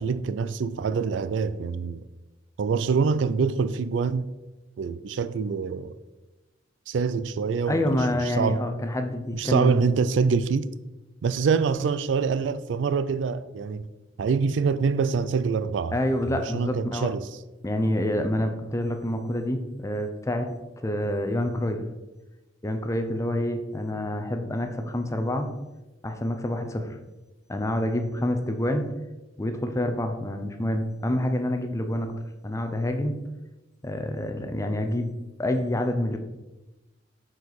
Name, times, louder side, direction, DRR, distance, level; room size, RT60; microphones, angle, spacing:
voice 1, 0.0-2.0 2.6-4.3 4.8-6.0 6.9-7.8 8.2-8.7 9.3-10.7 11.2-13.9 14.2-15.9 16.3-17.3, right 5 dB, 75° right, 0.3 m, -25 dB
voice 2, 7.7-9.9 15.9-17.1 17.6-20.5 20.8-21.9 22.6-25.5 26.0-27.0 27.5-28.9 29.4-32.1 32.4-33.2 33.8-36.2, left 1 dB, 15° left, 0.6 m, -27 dB
6.8 x 4.6 x 4.0 m
head